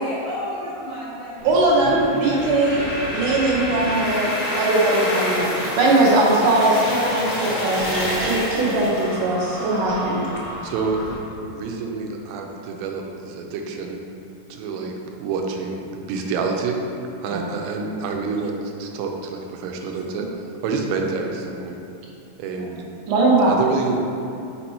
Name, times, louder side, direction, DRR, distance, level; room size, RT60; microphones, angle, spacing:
voice 1, 0.0-1.6 4.3-4.8 8.2-8.6 17.5-17.6 22.6-22.8, left 1 dB, 80° left, -10 dB, 1.1 m, -34 dB
sound 1, 1.4-11.1, equal, 55° left, 0.8 m, -28 dB
voice 2, 1.4-10.2 17.3-17.4 23.1-23.5, right 2 dB, 75° right, -4 dB, 2.0 m, -20 dB
voice 3, 10.6-11.0 11.5-14.0 14.5-14.9 15.2-16.8 17.2-20.3 20.6-21.8 22.4-22.8 23.5-24.0, right 5 dB, 90° right, 2 dB, 2.3 m, -28 dB
5.3 x 4.3 x 4.3 m, 2.6 s
omnidirectional pair, 4.0 m